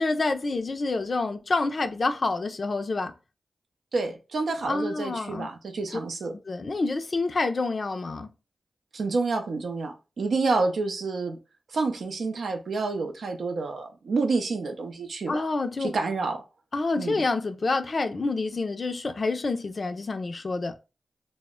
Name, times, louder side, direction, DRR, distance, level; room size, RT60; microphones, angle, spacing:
voice 1, 0.0-3.1 4.6-5.5 6.5-8.3 15.3-15.9 16.7-20.7, left 3 dB, 60° left, 0.4 m, -28 dB
voice 2, 3.9-6.4 8.9-11.4 11.7-15.5 15.8-16.4 17.0-17.2, right 3 dB, 80° right, 0.5 m, -28 dB
2.1 x 2.0 x 3.5 m
cardioid pair, 45°, 0 cm